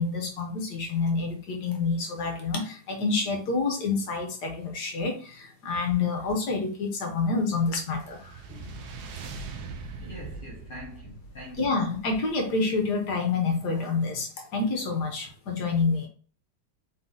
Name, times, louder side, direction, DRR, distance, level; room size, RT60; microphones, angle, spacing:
voice 1, 0.0-8.4 11.6-16.1, left 4 dB, 60° left, 1.4 m, -28 dB
sound 1, 7.4-12.9, right 4 dB, 70° right, 1.0 m, -42 dB
voice 2, 8.5-8.9 10.0-11.8 15.2-15.3, left 1 dB, 40° left, 0.9 m, -43 dB
4.1 x 2.8 x 3.8 m
omnidirectional pair, 2.2 m